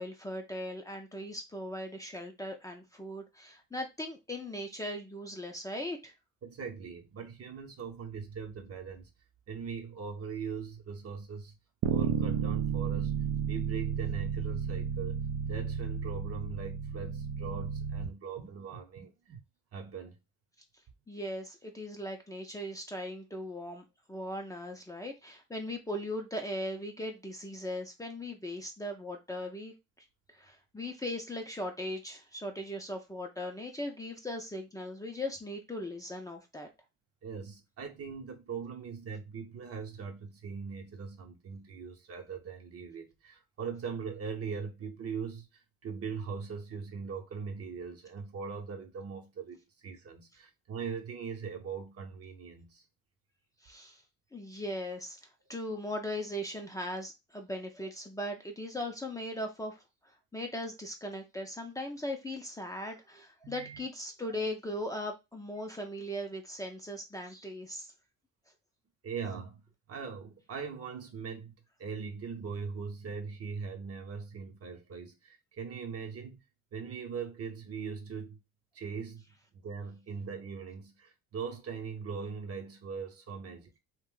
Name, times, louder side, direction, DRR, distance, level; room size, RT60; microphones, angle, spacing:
voice 1, 0.0-6.1 21.1-29.7 30.3-36.7 53.6-54.0 54.3-55.2 55.5-59.8 60.3-67.9, left 1 dB, 10° left, 0.5 m, -39 dB
voice 2, 6.4-9.1 9.5-11.5 11.9-13.2 13.5-15.2 15.5-19.4 19.7-20.2 37.2-52.8 63.4-63.8 69.0-69.6 69.9-71.5 71.8-76.4 76.7-78.4 78.7-79.2 79.5-83.8, right 5 dB, 45° right, 0.8 m, -40 dB
Bass guitar, 11.8-18.1, right 7 dB, 70° right, 0.5 m, -32 dB
2.4 x 2.2 x 3.7 m
supercardioid pair, 75°, 32 cm